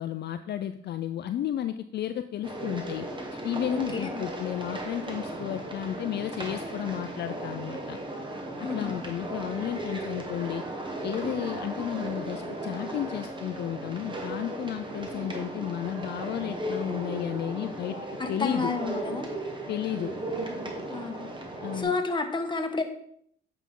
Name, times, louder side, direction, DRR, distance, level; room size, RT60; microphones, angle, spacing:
voice 1, 0.0-3.1 3.4-8.0 8.6-10.6 11.0-18.0 18.3-18.7 19.7-20.1 21.6-21.9, left 10 dB, 60° left, 10 dB, 0.4 m, -33 dB
sound 1, 2.4-21.8, right 1 dB, 25° right, 1.5 m, -36 dB
voice 2, 3.7-4.2 8.6-8.9 18.2-19.3 20.9-21.3 21.7-22.8, left 3 dB, 25° left, 4 dB, 1.3 m, -30 dB
8.3 x 5.6 x 3.7 m, 0.66 s
cardioid pair, 90°, 20 cm